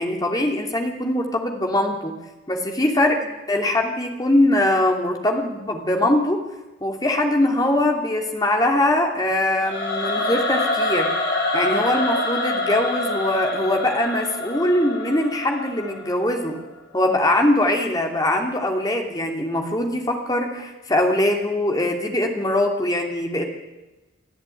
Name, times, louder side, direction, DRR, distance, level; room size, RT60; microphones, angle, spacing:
voice 1, 0.0-2.2 2.5-3.2 3.5-6.4 6.8-11.1 11.5-16.6 16.9-23.5, left 1 dB, 20° left, 2 dB, 2.8 m, -22 dB
Singing / Musical instrument, 9.6-16.7, left 2 dB, 60° left, 5.4 m, -26 dB
24.5 x 14.0 x 9.3 m, 1.1 s
head